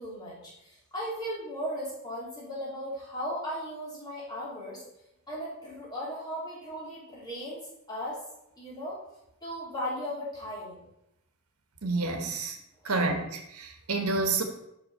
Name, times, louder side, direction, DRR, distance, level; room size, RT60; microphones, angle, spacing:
voice 1, 0.0-4.8 5.3-8.2 8.6-9.0 9.4-10.8 12.8-13.0, equal, 20° left, -7 dB, 3.0 m, -37 dB
voice 2, 11.8-12.6 12.8-14.4, right 3 dB, 80° right, 5 dB, 1.2 m, -29 dB
5.7 x 5.6 x 5.5 m, 0.81 s
head